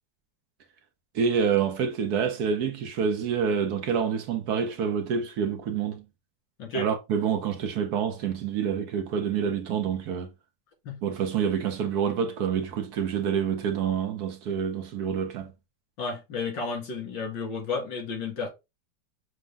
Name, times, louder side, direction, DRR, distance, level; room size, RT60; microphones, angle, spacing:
voice 1, 1.1-6.0 6.7-10.3 11.0-15.5, right 7 dB, 65° right, 1.1 m, -27 dB
voice 2, 16.0-18.5, left 4 dB, 90° left, 2.7 m, -32 dB
6.3 x 2.2 x 3.3 m
omnidirectional pair, 2.0 m